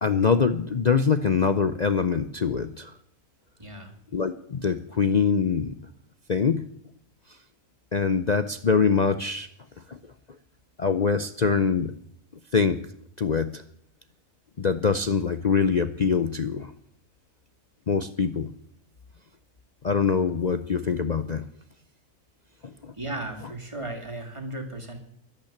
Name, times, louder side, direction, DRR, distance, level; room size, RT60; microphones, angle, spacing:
voice 1, 0.0-2.9 4.1-5.8 6.3-6.7 7.9-9.5 9.9-10.0 10.8-11.9 12.5-12.9 13.2-13.6 14.6-16.7 17.9-18.5 19.8-21.5 22.6-22.9, left 5 dB, 60° left, 11 dB, 0.4 m, -24 dB
voice 2, 3.6-3.9 22.9-25.0, right 1 dB, 20° right, 3 dB, 2.4 m, -35 dB
12.5 x 12.0 x 8.5 m, 0.68 s
omnidirectional pair, 1.6 m